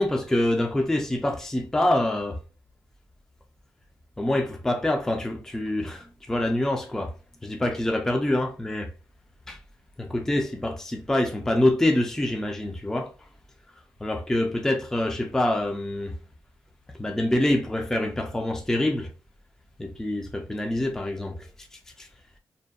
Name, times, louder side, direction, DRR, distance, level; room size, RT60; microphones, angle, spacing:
voice 1, 0.0-2.4 4.2-7.1 7.4-8.9 9.5-9.6 10.0-13.1 14.0-16.2 17.0-19.1 19.8-21.4 21.7-22.1, left 1 dB, 5° left, 0.3 m, -25 dB
2.7 x 2.1 x 2.2 m
cardioid pair, 105°, 7 cm